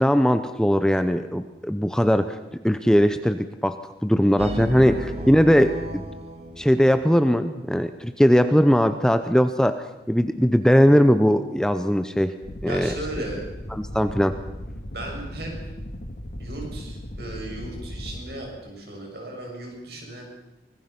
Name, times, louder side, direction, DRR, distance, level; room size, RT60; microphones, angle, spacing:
voice 1, 0.0-2.4 2.6-6.0 6.6-12.3 12.6-13.0 13.7-14.3, equal, 5° left, 10 dB, 0.7 m, -20 dB
sound 1, 4.4-7.3, equal, 35° right, 2.2 m, -34 dB
sound 2, 12.4-18.2, equal, 50° left, 1.9 m, -37 dB
voice 2, 12.7-13.4 14.9-15.5 16.4-20.2, right 1 dB, 55° right, 1 dB, 7.1 m, -36 dB
24.5 x 20.5 x 5.9 m, 1.0 s
head